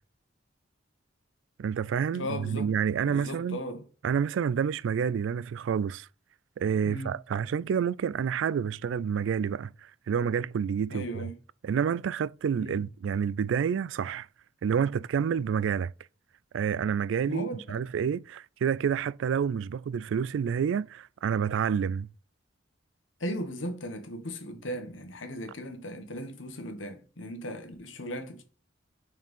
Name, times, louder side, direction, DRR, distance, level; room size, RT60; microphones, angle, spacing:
voice 1, 1.6-3.6 4.0-6.1 6.6-9.7 10.1-11.2 11.6-14.3 14.6-15.9 16.5-22.1, right 7 dB, 70° right, 0.3 m, -28 dB
voice 2, 2.1-2.7 3.1-3.8 6.8-7.1 10.9-11.3 12.6-12.8 17.3-17.8 23.2-28.4, equal, 85° left, 1.5 m, -37 dB
6.0 x 4.5 x 5.3 m
head